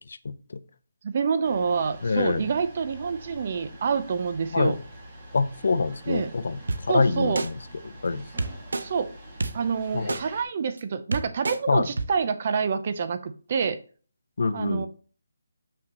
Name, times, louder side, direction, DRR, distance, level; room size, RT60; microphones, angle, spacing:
voice 1, 0.2-0.6 2.0-2.5 4.5-4.8 5.3-6.6 6.9-7.5 8.0-8.2 9.9-10.2 11.7-11.9 14.4-14.9, left 4 dB, 65° left, 12 dB, 0.7 m, -25 dB
voice 2, 1.0-4.8 6.1-6.3 6.9-7.4 8.8-9.1 9.5-13.8 14.5-14.9, right 6 dB, 40° right, 11 dB, 0.5 m, -27 dB
sound 1, 1.4-10.4, right 1 dB, 20° right, 2.0 m, -45 dB
sound 2, 6.7-6.8 7.4-7.5 8.4-8.8 9.4-9.5 10.1-10.2 10.8-10.9 11.1-11.6 12.0-12.1, right 3 dB, 75° right, 0.8 m, -27 dB
7.6 x 6.0 x 2.9 m, 0.40 s
hypercardioid pair, 170°, 0 cm